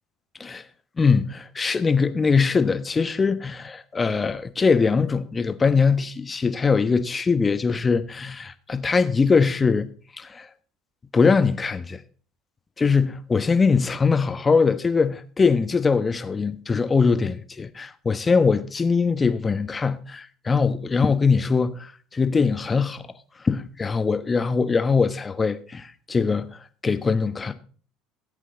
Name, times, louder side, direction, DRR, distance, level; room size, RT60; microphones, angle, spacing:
voice 1, 1.0-9.9 10.2-10.5 11.1-12.0 12.8-23.1 23.4-27.5, left 5 dB, 25° left, 1.2 m, -22 dB
15.5 x 8.1 x 3.9 m
hypercardioid pair, 80°, 0 cm